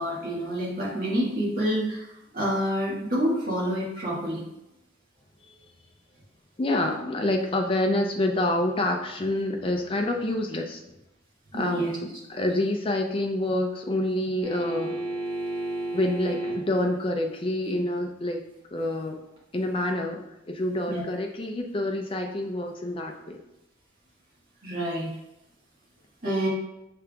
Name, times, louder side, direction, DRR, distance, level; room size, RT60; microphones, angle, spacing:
voice 1, 0.0-4.4 11.5-11.9 20.9-21.0 24.6-25.1 26.2-26.5, equal, 45° right, -6 dB, 1.4 m, -28 dB
voice 2, 6.6-11.0 11.5-15.0 15.9-18.4 18.7-19.2 19.5-23.4, left 1 dB, 25° left, 3 dB, 0.4 m, -27 dB
sound 1, 14.4-16.8 19.4-19.5, right 2 dB, 25° right, 1.3 m, -31 dB
6.5 x 3.4 x 2.3 m, 0.88 s
head